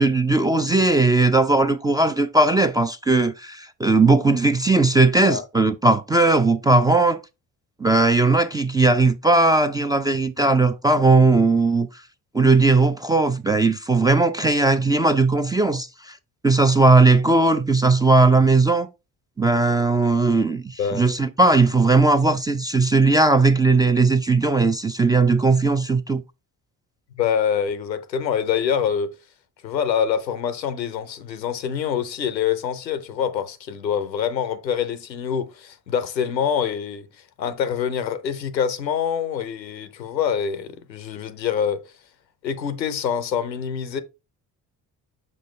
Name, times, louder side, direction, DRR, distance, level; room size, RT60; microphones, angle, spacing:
voice 1, 0.0-7.2 7.8-11.9 12.3-16.1 16.4-18.9 19.4-26.2, right 3 dB, 10° right, 0.3 m, -18 dB
voice 2, 20.8-21.1 27.1-29.1 29.6-37.1 37.4-41.8 42.4-44.0, left 8 dB, 90° left, 0.6 m, -25 dB
6.8 x 5.2 x 3.1 m
figure-of-eight pair, 45°, 49 cm